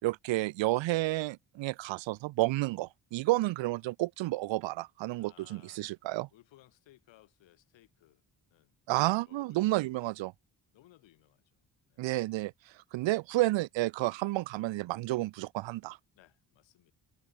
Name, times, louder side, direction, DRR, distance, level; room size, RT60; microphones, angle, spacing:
voice 1, 0.0-6.3 8.9-10.3 12.0-12.5 12.9-16.0, right 18 dB, 90° right, 0.9 m, -31 dB
voice 2, 5.2-5.8 6.3-8.2 8.5-8.8 9.1-9.8 10.7-11.4 11.9-12.2 16.1-16.9, left 15 dB, 90° left, 4.4 m, -62 dB
supercardioid pair, 60°, 44 cm